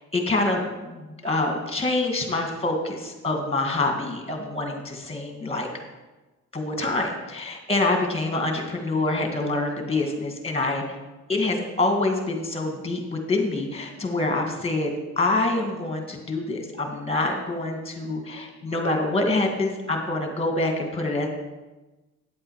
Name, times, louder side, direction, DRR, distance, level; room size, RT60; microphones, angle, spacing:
voice 1, 0.1-5.7 6.5-10.8 11.3-21.3, left 2 dB, 20° left, 3 dB, 2.0 m, -26 dB
9.2 x 7.7 x 4.8 m, 1.1 s
cardioid pair, 90°, 30 cm